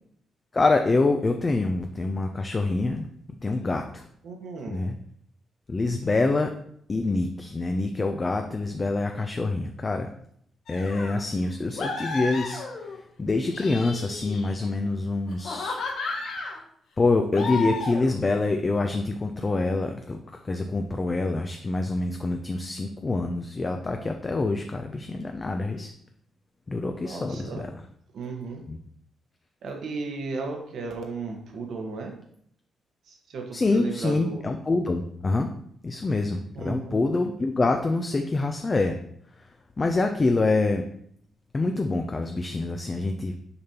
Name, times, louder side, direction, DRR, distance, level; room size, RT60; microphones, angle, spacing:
voice 1, 0.5-3.1 3.4-4.1 4.7-5.0 5.7-6.5 6.9-10.1 10.7-15.8 17.0-25.9 26.7-27.8 28.7-28.8 33.5-35.5 35.8-39.0 39.4-39.5 39.8-40.9 41.5-43.4, left 3 dB, 25° left, 5 dB, 0.4 m, -26 dB
voice 2, 4.2-4.9 27.0-27.7 28.1-28.6 29.6-32.1 33.1-34.4 36.5-37.0, right 3 dB, 70° right, 2 dB, 1.3 m, -35 dB
sound 1, 10.7-11.2 11.8-13.0 13.4-14.7 15.3-16.6 17.3-18.2, left 3 dB, 75° left, 1.3 m, -33 dB
6.7 x 5.2 x 2.9 m, 0.68 s
cardioid pair, 145°, 0 cm